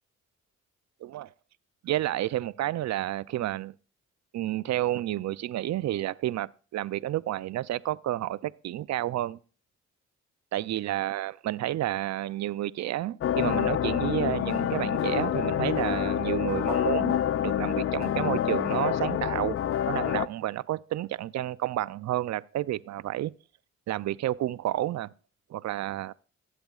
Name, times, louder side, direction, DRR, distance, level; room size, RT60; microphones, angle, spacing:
voice 1, 1.8-3.7 4.3-9.4 10.5-19.6 19.9-23.3 23.9-25.1 25.5-26.1, right 14 dB, 65° right, 0.5 m, -30 dB
sound 1, 13.2-20.3, left 10 dB, 50° left, 0.4 m, -27 dB
19.0 x 7.9 x 2.4 m
cardioid pair, 60°, 30 cm